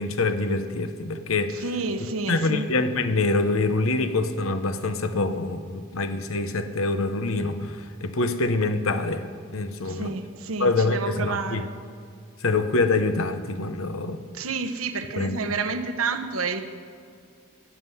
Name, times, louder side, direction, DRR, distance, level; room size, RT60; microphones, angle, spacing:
voice 1, 0.0-1.6 2.3-10.1 10.6-11.6 12.4-14.2 15.2-15.4, left 3 dB, 75° left, 10 dB, 0.9 m, -25 dB
voice 2, 1.5-2.7 9.8-11.7 14.3-16.6, right 4 dB, 80° right, 7 dB, 1.1 m, -29 dB
15.0 x 7.4 x 9.7 m, 2.2 s
head